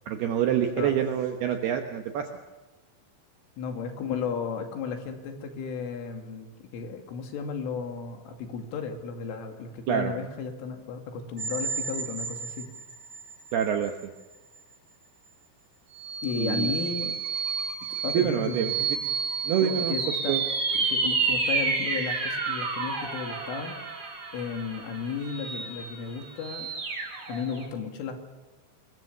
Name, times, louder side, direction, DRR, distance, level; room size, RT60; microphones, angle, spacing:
voice 1, 0.1-2.3 9.9-10.1 13.5-13.9 16.4-16.7 18.1-18.7 19.4-19.9 20.3-20.4, right 9 dB, 70° right, 5 dB, 2.8 m, -26 dB
voice 2, 3.6-12.7 16.2-17.1 18.0-19.0 19.6-20.3 20.8-23.7 24.3-26.7 27.3-28.2, left 6 dB, 85° left, 5 dB, 4.9 m, -34 dB
sound 1, 11.4-13.3 13.8-13.9 15.9-27.6, right 4 dB, 50° right, 7.0 m, -30 dB
25.5 x 22.5 x 6.8 m, 1.1 s
omnidirectional pair, 5.6 m